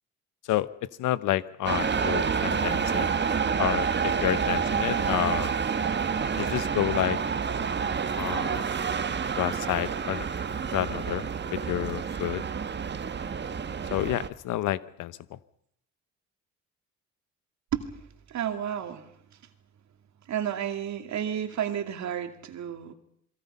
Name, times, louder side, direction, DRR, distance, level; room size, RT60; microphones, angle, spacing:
voice 1, 1.0-3.1 3.6-5.5 6.4-7.2 8.2-8.6 9.4-10.3 10.7-11.2 11.5-12.4 13.9-15.4, left 13 dB, 85° left, 16 dB, 1.0 m, -29 dB
sound 1, 1.6-14.3, right 6 dB, 35° right, 1.4 m, -28 dB
voice 2, 18.3-19.1 20.3-22.9, right 9 dB, 65° right, 7 dB, 2.3 m, -31 dB
28.5 x 21.5 x 5.5 m, 0.70 s
cardioid pair, 90°, 30 cm